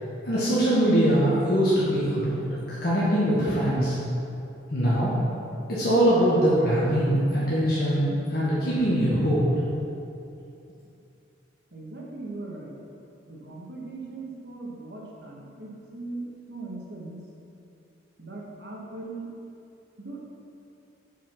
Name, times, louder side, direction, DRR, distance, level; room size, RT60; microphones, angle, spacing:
voice 1, 0.2-2.4 2.7-4.0 4.7-5.1 5.7-9.4 9.7-9.8, equal, 55° left, -9 dB, 1.5 m, -22 dB
voice 2, 11.7-12.8 13.3-17.2 18.2-19.3 20.0-20.2, right 2 dB, 60° right, -3 dB, 1.5 m, -39 dB
7.4 x 5.5 x 5.9 m, 2.7 s
head